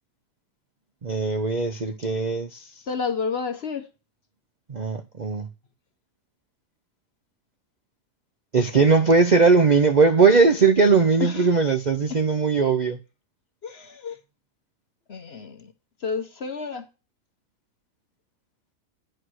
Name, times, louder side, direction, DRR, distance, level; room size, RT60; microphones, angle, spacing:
voice 1, 1.0-2.7 4.7-5.5 8.5-13.0, right 4 dB, 55° right, 0.4 m, -19 dB
voice 2, 2.9-3.9 11.2-11.5 12.1-12.2 13.6-14.2 15.1-15.7 16.0-16.9, left 5 dB, 45° left, 1.0 m, -30 dB
9.8 x 4.6 x 6.3 m
omnidirectional pair, 1.8 m